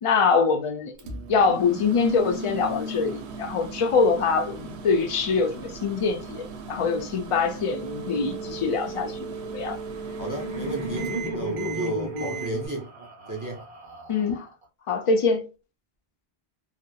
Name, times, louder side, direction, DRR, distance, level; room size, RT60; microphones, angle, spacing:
voice 1, 0.0-0.9 1.3-9.8 14.1-14.5 14.9-15.5, left 4 dB, 55° left, 0.3 m, -24 dB
Microwave oven, 1.0-12.5, right 3 dB, 80° right, 0.8 m, -38 dB
sound 1, 7.7-12.7, right 4 dB, 55° right, 0.8 m, -38 dB
Laughter, 9.6-14.6, equal, 5° right, 1.2 m, -35 dB
voice 2, 10.2-12.9 13.3-13.6, right 1 dB, 25° right, 0.5 m, -33 dB
2.7 x 2.0 x 2.2 m
omnidirectional pair, 1.1 m